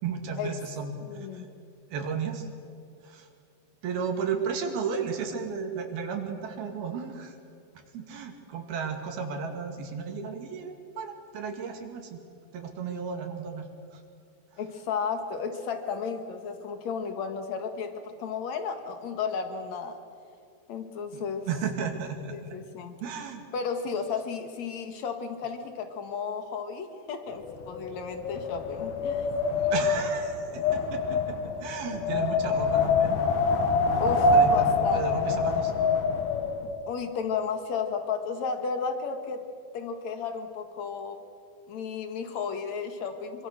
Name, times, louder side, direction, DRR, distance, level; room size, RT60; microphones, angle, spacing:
voice 1, 0.0-1.5 1.9-2.5 3.0-3.3 3.8-7.4 7.9-12.2 12.5-14.0 21.1-22.4 23.0-23.5 29.7-33.2 34.3-35.7, right 6 dB, 70° right, 4 dB, 4.0 m, -34 dB
voice 2, 1.0-1.5 14.6-20.0 20.7-21.5 22.3-22.9 23.5-29.3 30.8-31.0 34.0-35.4 36.6-39.4 39.7-41.2 41.7-43.5, left 6 dB, 55° left, 6 dB, 2.7 m, -33 dB
Wind, 27.5-36.7, left 3 dB, 70° left, 3.5 m, -25 dB
25.5 x 24.5 x 6.7 m, 2.4 s
omnidirectional pair, 4.6 m